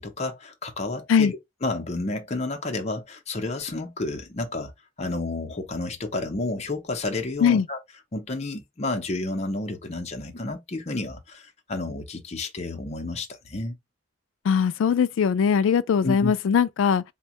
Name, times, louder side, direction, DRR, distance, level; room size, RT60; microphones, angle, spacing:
voice 1, 0.0-4.7 5.0-7.8 8.1-13.7 16.0-16.3, left 2 dB, 35° left, 0.6 m, -31 dB
voice 2, 14.4-17.0, left 7 dB, 80° left, 0.3 m, -20 dB
3.4 x 2.2 x 2.8 m
head